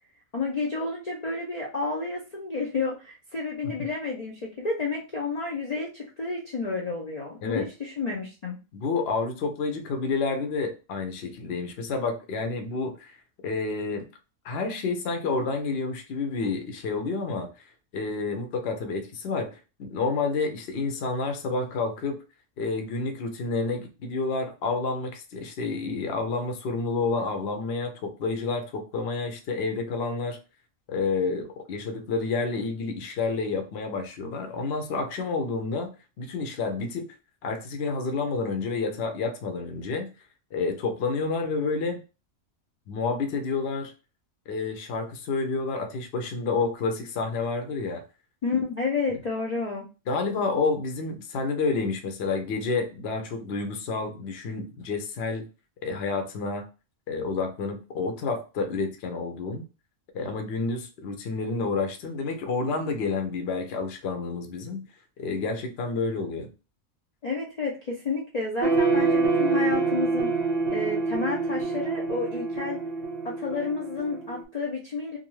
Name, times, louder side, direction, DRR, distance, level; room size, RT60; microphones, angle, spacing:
voice 1, 0.3-8.5 48.4-49.9 67.2-70.3 70.7-72.8 73.2-75.2, left 4 dB, 90° left, -2 dB, 0.3 m, -30 dB
voice 2, 8.7-14.1 14.4-17.5 17.9-22.2 22.6-30.4 30.9-35.9 36.2-37.1 37.4-40.1 40.5-42.0 42.9-43.9 44.5-48.0 50.1-55.5 55.8-56.6 57.1-59.6 60.1-64.8 65.2-66.5, left 4 dB, 60° left, 5 dB, 0.8 m, -29 dB
sound 1, 68.6-74.4, right 3 dB, 60° right, 0.7 m, -26 dB
2.5 x 2.3 x 3.0 m, 0.31 s
omnidirectional pair, 1.5 m